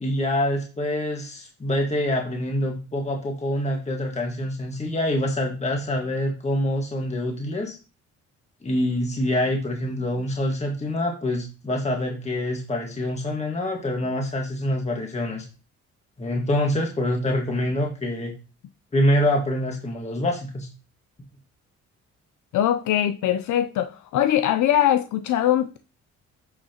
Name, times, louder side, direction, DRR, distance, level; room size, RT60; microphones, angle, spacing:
voice 1, 0.0-7.8 8.6-15.4 16.2-18.3 18.9-20.7, left 1 dB, 20° left, 1.7 m, -25 dB
voice 2, 22.5-25.8, left 11 dB, 75° left, 0.6 m, -22 dB
8.6 x 5.6 x 2.9 m
cardioid pair, 90°, 30 cm